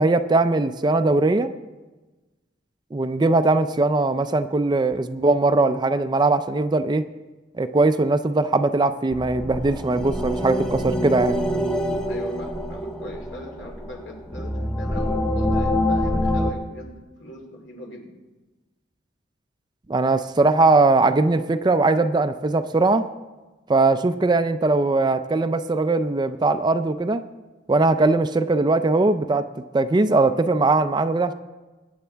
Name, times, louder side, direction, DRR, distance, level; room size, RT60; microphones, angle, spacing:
voice 1, 0.0-1.5 2.9-7.0 7.6-11.4 19.9-23.1 23.7-27.2 27.7-29.5 29.7-31.3, right 3 dB, 25° right, 10 dB, 0.4 m, -20 dB
sound 1, 9.1-16.5, left 1 dB, 5° left, 0.7 m, -25 dB
voice 2, 12.0-18.1, left 1 dB, 70° left, 1 dB, 2.5 m, -40 dB
22.0 x 9.5 x 3.4 m, 1.2 s
head